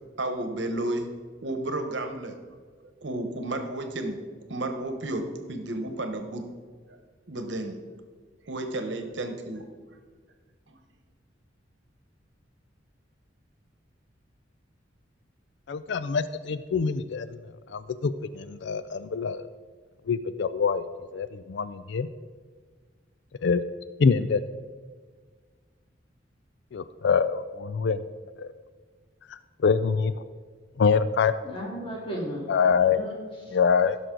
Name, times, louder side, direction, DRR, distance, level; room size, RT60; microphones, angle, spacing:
voice 1, 0.2-1.1 1.4-2.4 2.8-4.2 4.5-6.4 6.9-7.0 7.3-7.8 8.5-9.6 10.7-10.8, right 1 dB, 70° right, 6 dB, 1.2 m, -32 dB
voice 2, 15.7-17.3 17.7-19.5 20.1-20.9 21.1-22.1 23.4-23.6 24.0-24.4 26.7-28.0 28.4-28.5 29.6-30.1 30.8-31.3 32.5-33.0 33.5-34.0, left 5 dB, 65° left, 13 dB, 0.4 m, -24 dB
voice 3, 31.4-33.6, equal, 30° left, -2 dB, 2.2 m, -36 dB
15.5 x 6.3 x 3.9 m, 1.6 s
head